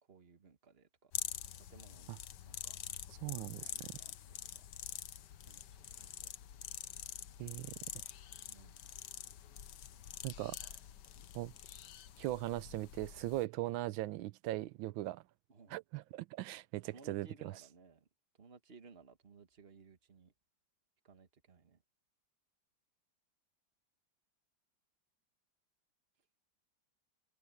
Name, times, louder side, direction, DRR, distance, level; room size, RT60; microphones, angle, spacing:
voice 1, 0.0-1.1 1.6-2.2 2.5-2.8 3.2-5.0 5.5-6.3 8.5-8.8 10.3-10.4 11.1-11.3 15.5-15.8 16.9-18.1 18.4-20.3 21.0-21.8, right 4 dB, 35° right, 1.6 m, -61 dB
sound 1, 1.1-13.4, left 10 dB, 65° left, 1.5 m, -46 dB
voice 2, 3.2-3.7 7.4-8.0 10.2-10.7 11.3-11.5 12.2-15.2 15.7-17.3, right 16 dB, 90° right, 1.4 m, -39 dB
omnidirectional pair, 2.1 m